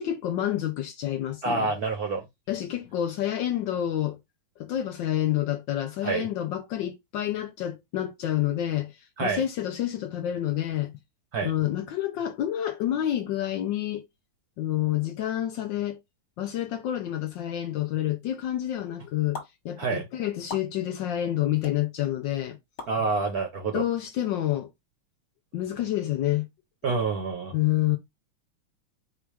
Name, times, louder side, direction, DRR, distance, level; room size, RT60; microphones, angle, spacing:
voice 1, 0.0-1.7 2.5-4.2 4.6-8.9 9.2-10.9 11.4-14.0 14.6-16.0 16.4-22.6 23.7-24.7 25.5-26.5 27.5-28.0, left 12 dB, 75° left, 1.2 m, -28 dB
voice 2, 1.4-2.2 6.0-6.3 9.2-9.4 11.3-11.5 19.8-20.1 22.9-23.8 26.8-27.5, right 4 dB, 65° right, 1.0 m, -27 dB
sound 1, 19.3-19.5 20.5-20.7 21.6-21.7 22.8-22.9, left 4 dB, 40° left, 1.3 m, -37 dB
4.4 x 2.4 x 4.7 m
omnidirectional pair, 2.4 m